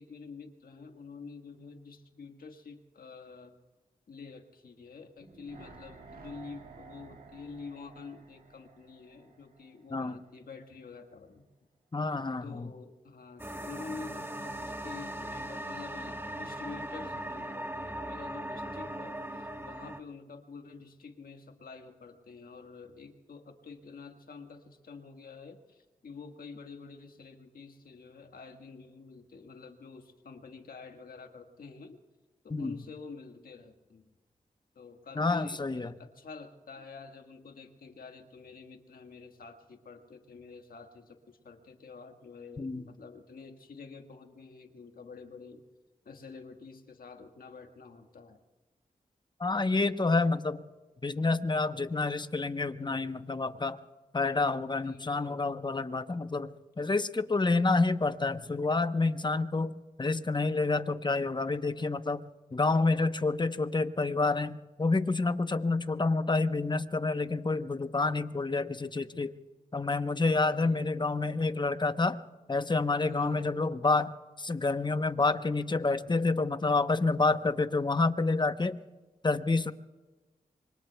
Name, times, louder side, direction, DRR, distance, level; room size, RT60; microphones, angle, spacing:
voice 1, 0.0-3.5 4.1-11.5 12.4-32.0 32.4-34.0 34.7-45.6 46.0-48.4 54.8-55.5 70.4-71.0 73.1-73.5, left 4 dB, 80° left, 5 dB, 1.5 m, -48 dB
sound 1, 5.2-10.3 10.6-10.7, right 4 dB, 85° right, 2.0 m, -53 dB
voice 2, 11.9-12.7 32.5-32.7 35.2-35.9 42.6-42.8 49.4-50.6 51.0-53.8 54.1-62.2 62.5-69.3 69.7-72.2 72.5-74.1 74.4-78.8 79.2-79.7, left 3 dB, 30° left, 11 dB, 0.9 m, -28 dB
sound 2, 13.4-20.0, right 1 dB, 15° right, 1.3 m, -39 dB
25.5 x 23.0 x 2.3 m, 1.2 s
cardioid pair, 40°, 15 cm